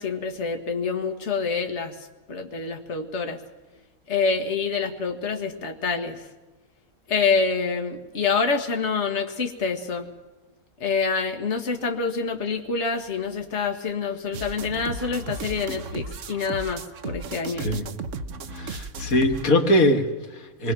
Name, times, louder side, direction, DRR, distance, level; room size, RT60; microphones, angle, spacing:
voice 1, 0.0-2.0 2.3-3.4 4.1-6.2 7.1-10.1 10.8-17.7, left 5 dB, 55° left, 4 dB, 1.8 m, -26 dB
sound 1, 14.3-19.5, right 3 dB, 60° right, 1.2 m, -35 dB
voice 2, 17.5-17.9 18.5-20.7, left 1 dB, 80° left, 6 dB, 2.0 m, -22 dB
26.0 x 21.0 x 6.1 m, 1.2 s
omnidirectional pair, 1.5 m